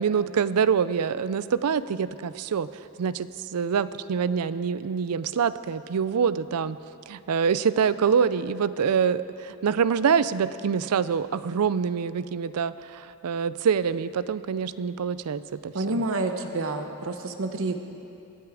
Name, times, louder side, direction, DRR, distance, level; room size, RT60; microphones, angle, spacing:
voice 1, 0.0-2.7 3.0-6.8 7.1-15.7, right 6 dB, 80° right, 16 dB, 0.4 m, -25 dB
voice 2, 15.7-17.8, right 2 dB, 65° right, 6 dB, 0.8 m, -28 dB
23.5 x 8.4 x 4.8 m, 2.7 s
head